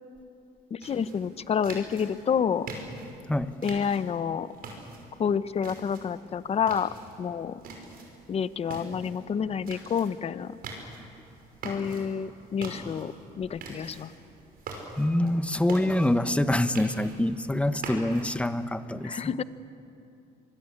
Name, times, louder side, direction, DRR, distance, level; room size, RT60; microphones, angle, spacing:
voice 1, 0.7-2.7 3.6-4.5 5.2-7.6 8.3-10.6 11.6-14.1 19.0-19.4, left 7 dB, 35° left, 14 dB, 0.8 m, -29 dB
sound 1, 0.8-18.6, right 3 dB, 60° right, 5.7 m, -44 dB
voice 2, 15.0-19.3, left 1 dB, 5° left, 11 dB, 1.0 m, -26 dB
25.5 x 21.0 x 8.6 m, 2.8 s
cardioid pair, 110°, 17 cm